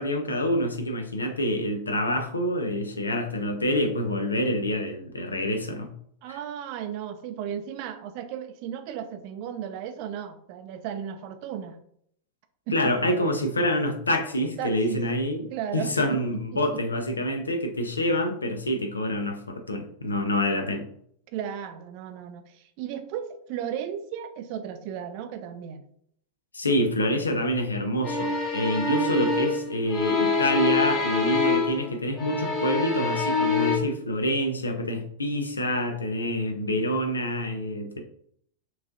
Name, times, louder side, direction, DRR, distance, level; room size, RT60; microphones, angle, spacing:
voice 1, 0.0-5.9 6.3-6.4 12.7-15.5 15.7-20.9 26.5-38.0, equal, 75° left, 5 dB, 0.7 m, -27 dB
voice 2, 6.2-11.8 12.7-12.9 14.6-15.1 15.5-16.8 21.3-25.8, right 9 dB, 45° right, 8 dB, 0.4 m, -35 dB
sound 1, 28.0-31.9 32.2-33.8, left 4 dB, 25° left, 1.2 m, -25 dB
6.2 x 3.1 x 2.5 m, 0.66 s
figure-of-eight pair, 90°, 0 cm